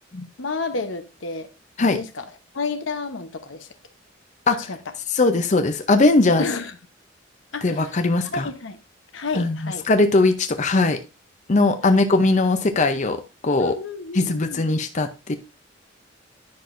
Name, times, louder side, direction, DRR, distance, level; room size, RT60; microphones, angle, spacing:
voice 1, 0.4-1.5 1.8-2.3 2.5-3.7 4.6-4.8 6.4-6.8 7.5-8.0 8.3-8.8 9.1-9.9 11.8-12.0 13.6-14.6, left 3 dB, 85° left, 0.9 m, -30 dB
voice 2, 5.1-6.4 7.6-8.5 9.3-11.0 11.5-13.7 14.2-15.3, left 2 dB, 40° left, 0.6 m, -20 dB
10.5 x 6.0 x 2.6 m
head